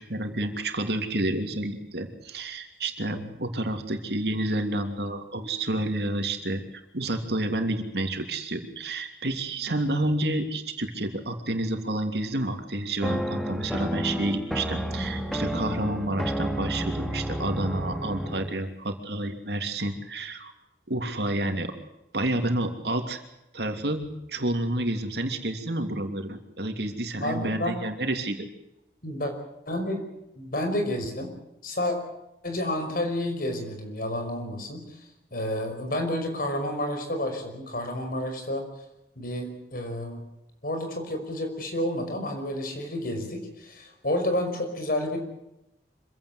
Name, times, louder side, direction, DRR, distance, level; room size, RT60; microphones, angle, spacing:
voice 1, 0.0-6.6 6.9-20.5 20.9-21.7 22.1-23.2 23.5-28.5, right 1 dB, 65° right, 5 dB, 3.0 m, -29 dB
sound 1, 13.0-18.6, equal, ahead, 2.1 m, -31 dB
voice 2, 27.2-27.8 29.0-29.3 29.7-30.1 30.4-31.4 31.6-32.0 32.4-35.0 35.3-38.6 39.2-40.2 40.6-45.2, left 1 dB, 55° left, 5 dB, 5.5 m, -30 dB
26.0 x 16.5 x 8.0 m, 0.88 s
head